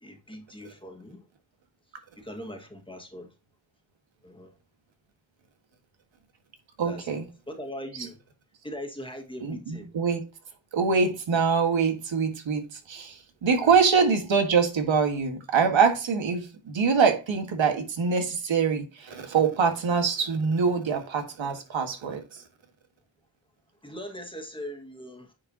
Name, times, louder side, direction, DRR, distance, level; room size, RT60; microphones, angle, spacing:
voice 1, 0.0-1.2 2.2-3.3 4.2-4.5 6.8-7.1 7.5-8.2 8.6-9.9 13.6-13.7 23.8-25.3, equal, 10° left, 1.8 m, -40 dB
voice 2, 6.8-7.3 9.4-10.2 10.7-22.2, right 5 dB, 85° right, 1.7 m, -24 dB
9.6 x 4.8 x 2.9 m
wide cardioid pair, 95°, 45 cm